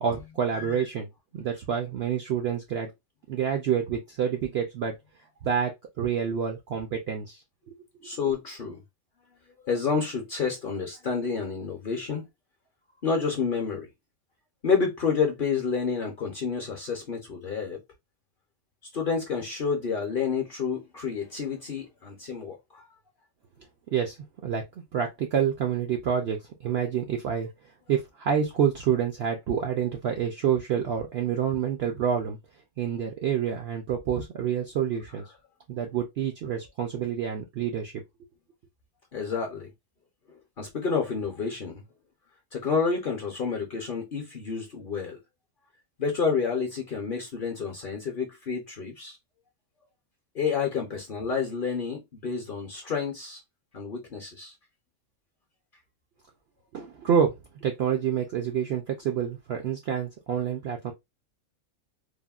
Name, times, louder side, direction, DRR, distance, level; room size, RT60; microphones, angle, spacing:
voice 1, 0.0-1.1 1.3-2.9 3.3-5.0 5.4-7.4 7.7-7.8 23.9-24.2 24.4-24.6 24.9-27.5 27.9-32.4 32.8-35.2 35.7-38.0 56.7-57.3 57.6-60.9, right 8 dB, 70° right, 0.6 m, -28 dB
voice 2, 8.0-8.8 9.6-12.3 13.0-13.9 14.6-17.8 18.9-22.9 39.1-39.7 40.6-41.8 42.5-45.2 46.0-49.2 50.3-53.4 53.7-54.5, left 5 dB, 50° left, 0.7 m, -29 dB
3.4 x 2.1 x 2.3 m
omnidirectional pair, 1.5 m